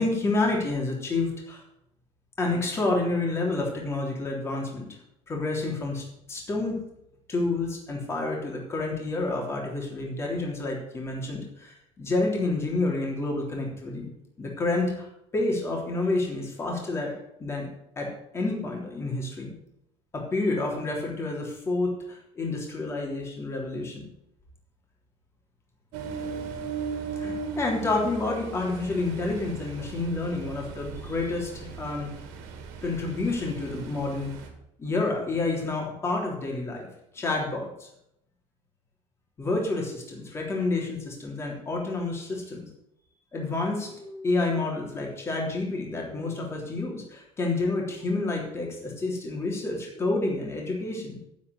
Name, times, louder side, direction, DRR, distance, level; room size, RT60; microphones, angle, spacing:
voice 1, 0.0-1.6 2.4-4.9 5.3-6.0 6.3-6.8 7.3-14.1 14.4-15.1 15.3-17.1 17.4-17.7 18.0-18.1 18.3-19.5 20.1-24.0 27.1-32.1 32.8-34.3 34.8-36.9 37.1-37.9 39.4-42.7 43.3-51.2, left 2 dB, 20° left, -1 dB, 3.3 m, -29 dB
Ocean, 25.9-34.5, right 5 dB, 85° right, 2.4 m, -38 dB
11.0 x 5.7 x 8.2 m, 0.78 s
cardioid pair, 150°, 12 cm